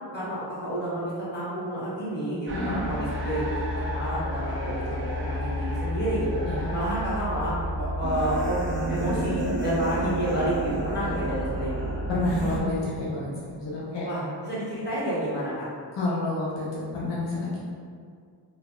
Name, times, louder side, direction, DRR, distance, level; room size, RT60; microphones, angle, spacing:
voice 1, 0.1-3.6 3.9-6.3 6.7-11.7 14.0-15.7, right 1 dB, 25° left, -10 dB, 1.1 m, -29 dB
sound 1, 2.5-12.6, equal, 30° right, 0.4 m, -30 dB
voice 2, 12.1-14.1 15.9-17.6, left 2 dB, 70° left, -6 dB, 0.7 m, -29 dB
3.3 x 2.2 x 2.2 m, 2.2 s
wide cardioid pair, 125°, 44 cm